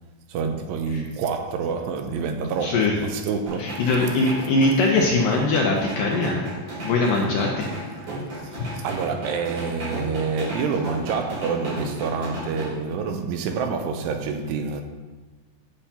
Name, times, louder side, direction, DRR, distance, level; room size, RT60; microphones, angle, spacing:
voice 1, 0.3-4.1 8.8-14.8, right 5 dB, 85° right, 2.8 m, -27 dB
voice 2, 2.6-3.0 3.6-6.4 6.8-7.7 8.6-8.7, left 3 dB, 75° left, 2.0 m, -21 dB
sound 1, 3.5-12.7, right 1 dB, 45° right, 3.9 m, -34 dB
10.0 x 8.3 x 2.9 m
omnidirectional pair, 4.8 m